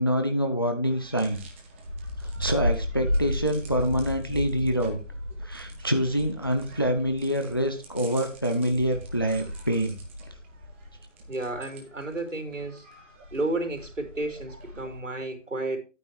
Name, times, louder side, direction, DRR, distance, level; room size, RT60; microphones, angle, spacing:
voice 1, 0.0-1.4 2.2-5.0 5.4-10.0, equal, 20° left, 0.5 m, -26 dB
sound 1, 0.8-15.0, left 1 dB, 10° right, 0.8 m, -35 dB
voice 2, 11.3-12.8 13.3-15.8, right 2 dB, 75° right, 3.6 m, -32 dB
10.5 x 9.2 x 3.1 m
figure-of-eight pair, 145°, 38 cm